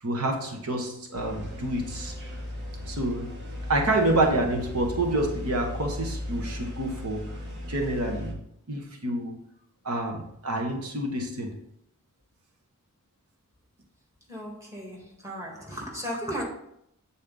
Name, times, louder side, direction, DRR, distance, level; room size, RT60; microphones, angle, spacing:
voice 1, 0.0-2.1 2.9-3.3 3.7-7.3 7.7-8.4 8.7-9.4 9.8-11.6, right 1 dB, 85° right, 3 dB, 1.2 m, -28 dB
sound 1, 1.1-8.3, left 1 dB, 50° right, 1.3 m, -36 dB
voice 2, 14.3-16.4, equal, 15° right, -2 dB, 1.6 m, -35 dB
8.3 x 4.2 x 3.9 m, 0.74 s
head